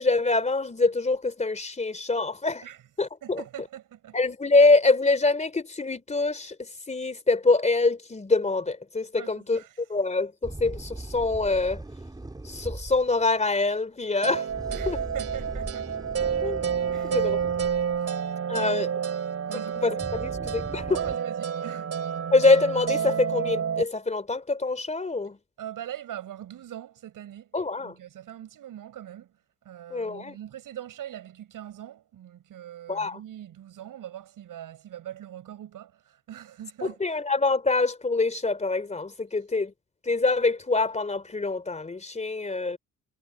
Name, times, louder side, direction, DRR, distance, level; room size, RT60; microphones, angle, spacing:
voice 1, 0.0-2.6 3.0-3.4 4.1-11.8 12.4-14.5 14.9-15.0 16.4-16.6 17.0-17.4 18.5-18.9 19.5-21.0 22.3-25.4 27.5-27.9 29.9-30.4 32.9-33.2 36.8-39.7 40.0-42.8, left 3 dB, 20° left, 3.4 m, -25 dB
voice 2, 3.2-4.2 9.2-9.7 14.7-15.9 16.9-17.3 18.0-18.1 18.5-18.9 19.5-19.8 20.9-21.9 25.6-27.5 27.8-29.3 29.6-37.0, right 11 dB, 70° right, 6.9 m, -42 dB
sound 1, 10.4-13.1 14.5-18.1 19.5-19.6 20.0-21.2, right 2 dB, 10° right, 3.7 m, -39 dB
sound 2, 14.2-23.8, right 7 dB, 45° right, 6.2 m, -29 dB
cardioid pair, 120°, 34 cm